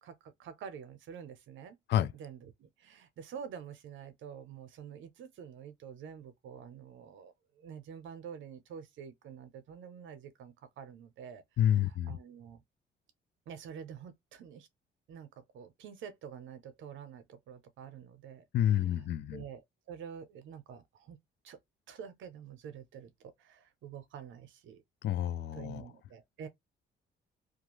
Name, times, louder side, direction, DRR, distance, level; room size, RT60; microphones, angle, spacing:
voice 1, 0.0-1.8 2.1-12.6 13.5-14.7 15.1-18.4 18.7-18.8 19.3-19.6 19.9-21.2 21.4-21.6 21.9-23.1 23.4-24.8 25.5-26.5, right 7 dB, 75° right, 0.7 m, -48 dB
voice 2, 11.6-12.2 18.5-19.4 25.0-25.9, left 11 dB, 60° left, 0.4 m, -29 dB
2.4 x 2.2 x 3.0 m
cardioid pair, 90°, 20 cm